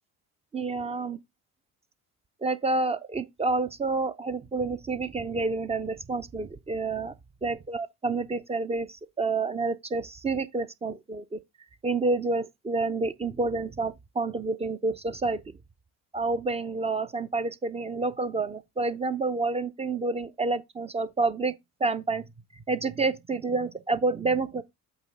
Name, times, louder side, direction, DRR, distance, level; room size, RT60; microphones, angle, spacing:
voice 1, 0.5-1.2 2.4-7.1 7.4-7.5 8.0-11.4 11.8-15.4 16.1-21.5 21.8-22.2 22.7-24.6, right 3 dB, 15° right, 0.4 m, -28 dB
8.2 x 3.2 x 5.2 m
figure-of-eight pair, 50°, 43 cm